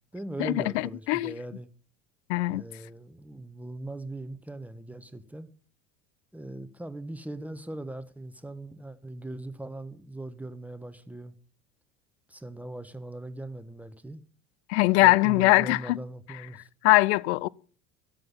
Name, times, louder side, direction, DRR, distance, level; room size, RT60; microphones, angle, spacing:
voice 1, 0.1-1.7 2.5-5.5 6.3-11.3 12.3-14.2 15.0-16.7, right 1 dB, 5° right, 1.3 m, -40 dB
voice 2, 2.3-2.6 14.7-16.0 16.8-17.5, left 20 dB, 60° left, 0.6 m, -21 dB
13.5 x 10.5 x 5.5 m
figure-of-eight pair, 70°, 37 cm